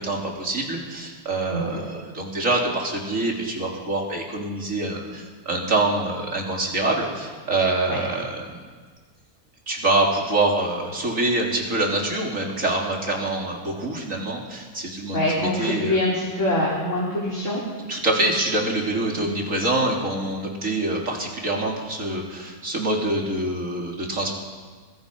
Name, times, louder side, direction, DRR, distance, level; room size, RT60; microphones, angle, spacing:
voice 1, 0.0-8.6 9.7-16.0 17.9-24.3, right 2 dB, 55° right, -1 dB, 4.1 m, -25 dB
voice 2, 1.5-1.8 7.9-8.0 15.1-17.6 19.1-19.2, left 1 dB, 50° left, -6 dB, 5.1 m, -24 dB
26.0 x 22.0 x 5.6 m, 1.5 s
omnidirectional pair, 1.6 m